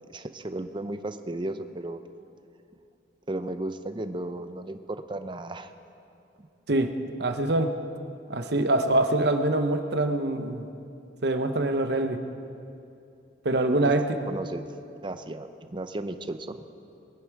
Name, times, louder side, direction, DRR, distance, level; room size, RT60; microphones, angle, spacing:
voice 1, 0.1-2.0 3.3-4.8 5.1-5.7 13.8-13.9 14.3-14.7 15.0-16.6, right 1 dB, 25° right, 9 dB, 0.6 m, -34 dB
voice 2, 7.2-7.8 8.3-10.7 11.2-12.2 13.4-14.2, right 2 dB, 65° right, 7 dB, 0.9 m, -24 dB
21.5 x 9.8 x 4.7 m, 2.7 s
head